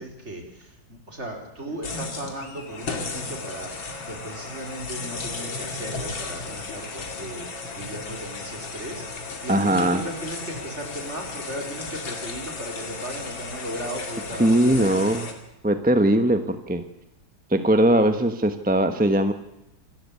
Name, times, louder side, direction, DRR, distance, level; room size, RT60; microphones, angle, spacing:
voice 1, 0.0-15.1, right 1 dB, 30° right, 3 dB, 4.4 m, -36 dB
sound 1, 1.8-15.3, left 3 dB, 70° left, 3.2 m, -35 dB
voice 2, 9.5-10.0 14.4-15.2 15.6-16.8 17.5-19.3, right 1 dB, 5° right, 9 dB, 0.6 m, -20 dB
26.5 x 13.0 x 8.4 m, 0.89 s
omnidirectional pair, 2.2 m